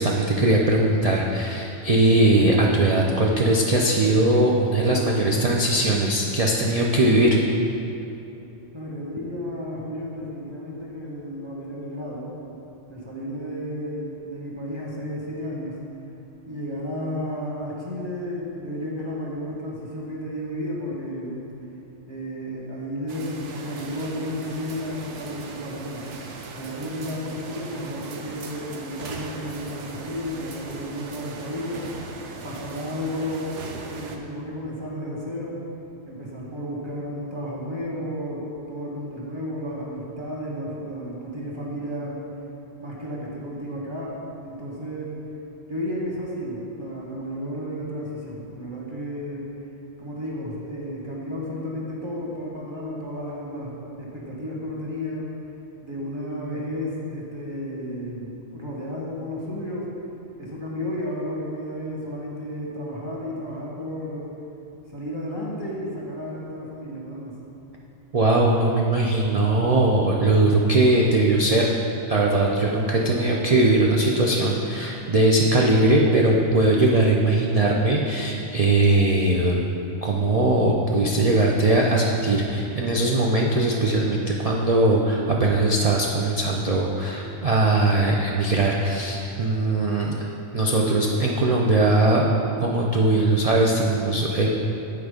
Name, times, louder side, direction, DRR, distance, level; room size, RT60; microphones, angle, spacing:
voice 1, 0.0-7.4 68.1-71.7 72.1-79.6 80.0-90.3 90.5-92.3 92.6-94.5, right 2 dB, 50° right, -2 dB, 0.4 m, -20 dB
voice 2, 8.7-12.3 12.9-15.8 16.5-21.5 22.1-26.1 26.5-31.8 32.4-33.5 33.9-35.6 36.0-42.2 42.8-44.1 44.4-45.1 45.7-49.5 50.0-55.3 55.8-59.9 60.4-64.4 64.9-67.4, equal, 20° right, -5 dB, 1.4 m, -32 dB
sound 1, 23.1-34.2, right 4 dB, 70° right, 1.0 m, -39 dB
8.5 x 4.6 x 5.0 m, 2.8 s
omnidirectional pair, 1.3 m